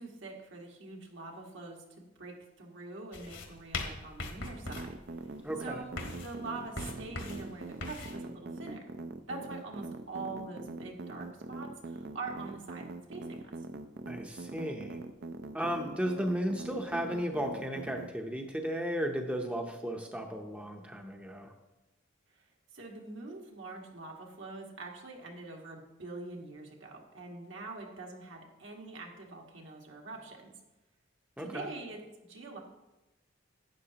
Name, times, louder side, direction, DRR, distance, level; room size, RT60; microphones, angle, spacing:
voice 1, 0.0-5.2 5.6-8.8 9.3-13.6 22.3-22.5 22.7-30.4 31.4-32.6, right 3 dB, 70° right, 0 dB, 1.7 m, -44 dB
sound 1, 3.1-8.2, left 3 dB, 65° left, 1.4 m, -41 dB
sound 2, 4.7-18.1, right 3 dB, 55° right, 0.5 m, -42 dB
voice 2, 5.4-5.8 14.1-15.0 15.5-21.5 31.4-31.7, equal, 5° right, 2 dB, 0.7 m, -35 dB
11.5 x 9.1 x 2.9 m, 1.0 s
head